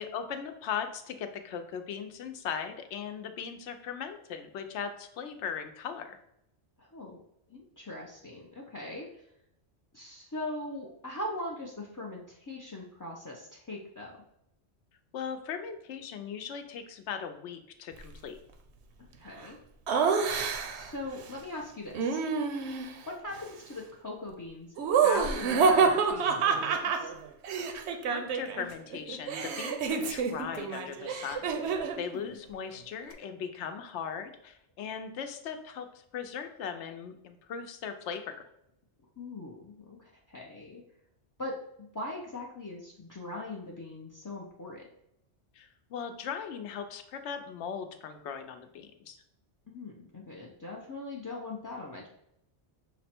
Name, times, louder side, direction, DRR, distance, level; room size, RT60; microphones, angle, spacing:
voice 1, 0.0-6.2 15.1-18.4 28.1-38.3 45.5-49.2, left 7 dB, 80° left, 7 dB, 0.9 m, -39 dB
voice 2, 6.8-7.2 7.5-9.1 9.9-14.1 19.2-19.6 20.7-22.2 23.1-24.7 25.0-27.1 32.0-32.2 39.2-40.8 41.4-44.8 49.7-52.1, left 1 dB, 35° left, -2 dB, 0.3 m, -40 dB
Laughter, 19.9-20.9 21.9-23.0 24.8-28.7 28.9-32.0, right 5 dB, 75° right, 0.9 m, -28 dB
5.9 x 2.1 x 4.2 m, 0.79 s
omnidirectional pair, 1.2 m